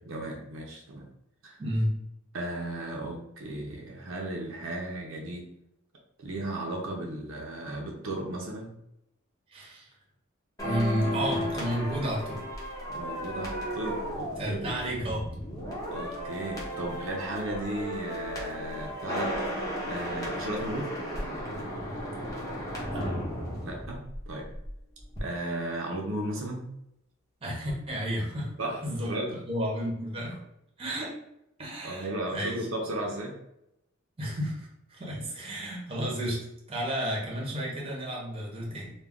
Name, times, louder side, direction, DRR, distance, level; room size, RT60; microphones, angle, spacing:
voice 1, 0.1-1.1 1.4-1.6 2.3-5.5 6.2-8.7 12.9-14.6 15.9-19.4 19.8-20.9 23.6-24.0 24.3-24.5 25.2-26.6 28.6-29.4 31.8-33.3, right 1 dB, 70° right, -1 dB, 0.5 m, -35 dB
voice 2, 1.6-1.9 9.5-9.9 10.6-12.4 14.4-15.3 22.9-23.0 27.4-28.5 28.8-29.1 29.4-30.4 30.8-31.1 31.6-32.5 34.2-36.4 36.7-38.9, equal, 25° right, -3 dB, 0.7 m, -32 dB
sound 1, 10.6-24.7 25.0-25.2, equal, 15° left, 0.8 m, -34 dB
2.3 x 2.2 x 3.5 m, 0.82 s
head